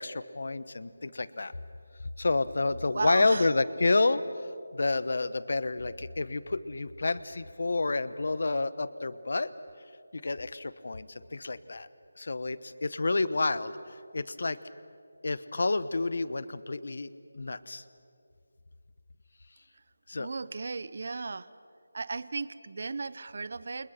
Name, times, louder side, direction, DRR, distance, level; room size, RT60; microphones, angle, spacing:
voice 1, 0.0-1.5 2.2-4.2 4.7-9.5 10.1-11.9 12.2-13.7 14.1-14.6 15.2-17.8 20.1-20.3, left 3 dB, 55° left, 15 dB, 1.1 m, -29 dB
voice 2, 2.9-3.5 19.7-19.8 20.2-21.5 21.9-23.9, right 4 dB, 45° right, 17 dB, 0.8 m, -35 dB
29.0 x 29.0 x 5.9 m, 2.3 s
figure-of-eight pair, 175°, 0 cm